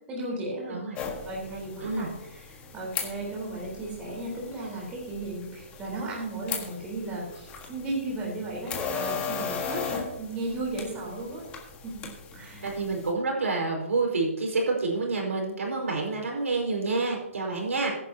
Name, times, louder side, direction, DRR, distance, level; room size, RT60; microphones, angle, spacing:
voice 1, 0.1-0.8 1.3-11.5 11.8-12.0 12.3-12.7, right 2 dB, 15° right, -4 dB, 3.9 m, -35 dB
sound 1, 0.9-13.1, left 6 dB, 15° left, 1.5 m, -38 dB
voice 2, 12.6-17.9, right 3 dB, 85° right, 0 dB, 5.0 m, -28 dB
16.0 x 10.5 x 2.8 m, 0.89 s
hypercardioid pair, 160°, 7 cm